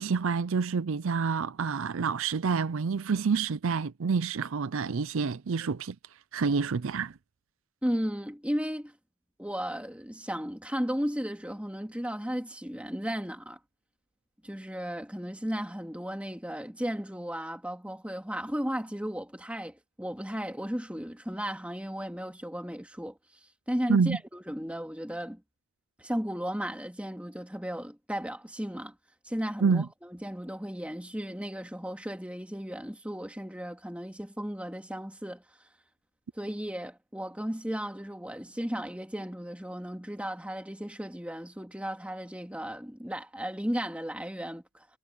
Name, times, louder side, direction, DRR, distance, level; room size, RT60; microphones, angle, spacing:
voice 1, 0.0-6.0 6.3-7.2 23.9-24.2 29.6-29.9, right 5 dB, 60° right, 0.5 m, -28 dB
voice 2, 7.8-8.9 9.4-13.6 14.4-23.2 23.7-25.4 26.0-28.9 29.3-35.4 36.4-44.9, equal, 5° right, 2.2 m, -35 dB
head